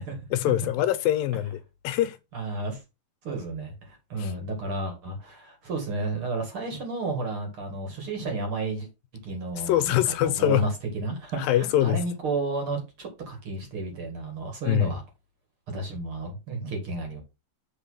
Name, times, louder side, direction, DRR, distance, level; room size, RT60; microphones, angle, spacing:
voice 1, 0.3-1.6 1.8-2.2 4.2-4.3 9.5-10.7 11.4-12.0 14.6-14.9, left 13 dB, 80° left, 2.6 m, -24 dB
voice 2, 2.3-2.8 3.2-8.9 9.2-15.0 15.7-17.2, right 3 dB, 45° right, 2.4 m, -32 dB
7.5 x 4.2 x 5.5 m
omnidirectional pair, 4.1 m